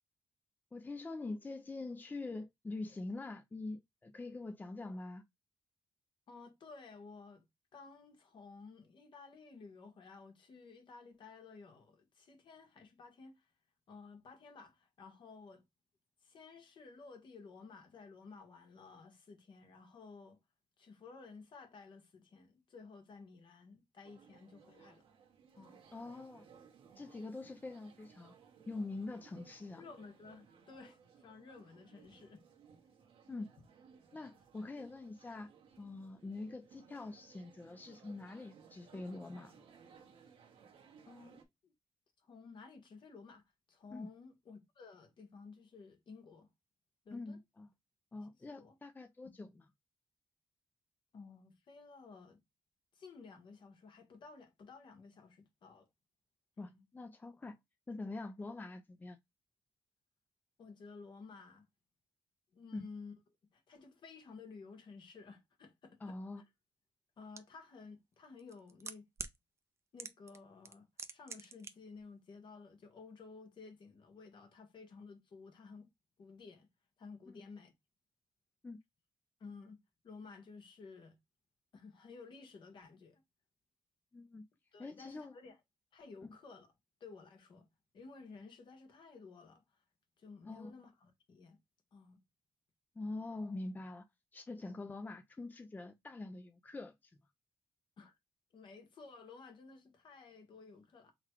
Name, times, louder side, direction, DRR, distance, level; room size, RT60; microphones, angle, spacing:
voice 1, 0.7-5.2 25.9-26.5 27.0-28.3 28.7-29.8 33.3-33.5 34.1-35.5 35.8-39.6 43.9-44.1 47.1-47.7 48.1-49.5 56.6-57.6 57.9-59.2 62.7-62.9 66.0-66.4 77.3-77.4 78.6-78.8 84.1-84.5 84.8-85.3 86.2-86.3 90.5-90.7 93.0-94.1 94.3-96.9, left 2 dB, 20° left, 0.6 m, -44 dB
voice 2, 6.3-7.5 7.7-13.5 13.9-15.6 16.2-20.4 20.8-25.0 25.5-25.8 29.8-32.4 41.0-41.7 42.2-43.4 43.7-46.5 47.0-47.4 48.5-48.8 49.2-49.5 51.1-52.4 52.9-55.9 56.6-56.8 60.6-61.6 62.5-63.1 63.5-66.4 67.2-69.0 69.9-75.9 76.2-76.7 77.0-77.7 79.4-79.8 80.0-81.2 81.7-83.2 84.7-85.6 85.9-86.7 87.0-87.7 87.9-89.8 90.2-91.6 91.9-92.2 98.0-98.1 98.5-101.1, left 4 dB, 60° left, 1.4 m, -54 dB
sound 1, 24.0-41.4, right 6 dB, 80° right, 1.2 m, -61 dB
sound 2, 67.4-67.5 68.4-69.4 70.0-70.4 70.6-71.7 72.0-72.1, right 4 dB, 30° right, 0.6 m, -44 dB
3.9 x 2.3 x 4.5 m
cardioid pair, 95°, 9 cm